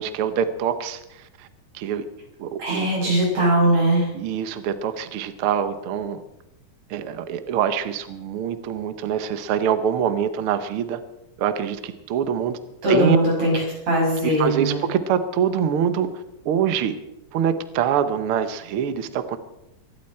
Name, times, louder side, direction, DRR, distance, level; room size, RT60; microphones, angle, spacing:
voice 1, 0.0-1.5 1.7-2.1 2.4-2.9 3.4-3.5 4.1-6.2 6.9-11.0 11.4-12.6 12.9-13.2 14.2-16.9 17.3-19.4, right 8 dB, 80° right, 10 dB, 1.2 m, -25 dB
voice 2, 2.6-4.1 12.8-13.5 13.9-14.8, right 1 dB, 55° right, -2 dB, 8.0 m, -20 dB
24.0 x 12.0 x 4.3 m, 0.87 s
omnidirectional pair, 3.9 m